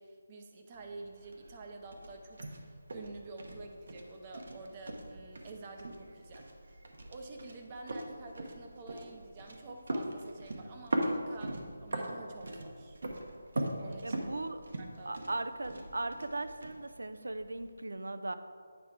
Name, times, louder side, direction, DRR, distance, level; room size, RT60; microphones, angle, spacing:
voice 1, 0.0-6.5 7.1-13.0 13.8-14.2 14.8-15.3, right 3 dB, 25° right, 3 dB, 0.7 m, -49 dB
sound 1, 0.7-17.7, right 1 dB, 65° right, 1.0 m, -41 dB
voice 2, 14.0-14.6 15.1-18.3, right 2 dB, 90° right, 10 dB, 0.5 m, -38 dB
9.1 x 4.4 x 4.9 m, 2.1 s
figure-of-eight pair, 170°, 0 cm